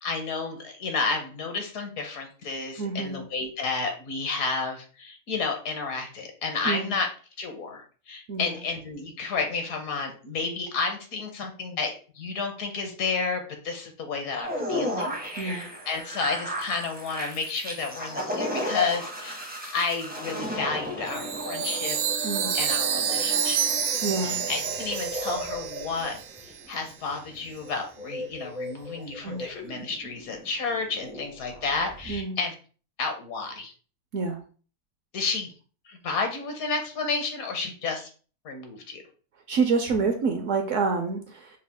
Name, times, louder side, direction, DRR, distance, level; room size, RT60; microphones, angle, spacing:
voice 1, 0.0-7.1 7.4-19.4 19.7-22.0 22.5-23.6 24.2-26.1 26.7-32.5 33.0-33.7 35.1-35.5 35.9-38.1 38.4-39.0, left 4 dB, 65° left, 4 dB, 1.2 m, -31 dB
voice 2, 2.8-3.2 6.6-6.9 8.3-8.6 15.4-15.7 22.2-22.5 24.0-24.4 29.2-29.4 32.1-32.4 34.1-34.4 39.5-41.6, right 4 dB, 65° right, 4 dB, 0.8 m, -27 dB
sound 1, 14.4-32.2, equal, 10° right, 0.5 m, -35 dB
Chime, 21.1-26.6, right 8 dB, 90° right, 1.2 m, -29 dB
5.5 x 2.3 x 3.4 m, 0.39 s
omnidirectional pair, 1.7 m